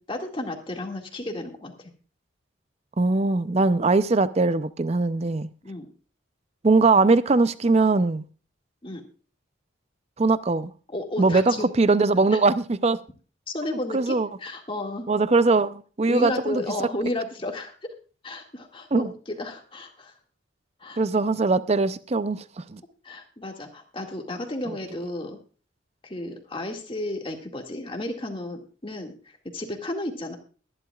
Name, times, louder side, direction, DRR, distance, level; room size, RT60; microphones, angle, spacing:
voice 1, 0.0-1.9 5.6-5.9 8.8-9.0 10.9-11.6 12.3-12.4 13.5-15.1 16.1-17.7 18.2-20.1 20.8-21.0 23.0-25.4 26.0-29.1 29.5-30.4, left 1 dB, 25° left, 2.0 m, -33 dB
voice 2, 3.0-5.5 6.6-8.2 10.2-10.7 11.2-13.0 13.9-14.3 15.1-16.6 18.9-19.1 21.0-22.8, right 3 dB, 35° right, 0.5 m, -21 dB
21.5 x 11.0 x 2.4 m
head